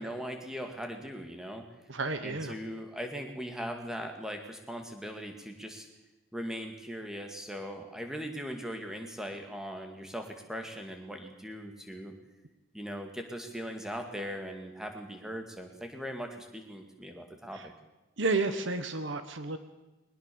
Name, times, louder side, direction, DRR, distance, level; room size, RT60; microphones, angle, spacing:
voice 1, 0.0-1.7 2.2-5.9 6.3-12.1 12.7-17.7, equal, ahead, 4 dB, 2.2 m, -39 dB
voice 2, 1.9-2.5 17.5-17.7 18.2-19.6, right 3 dB, 60° right, 10 dB, 1.2 m, -31 dB
21.5 x 19.0 x 7.1 m, 1.1 s
head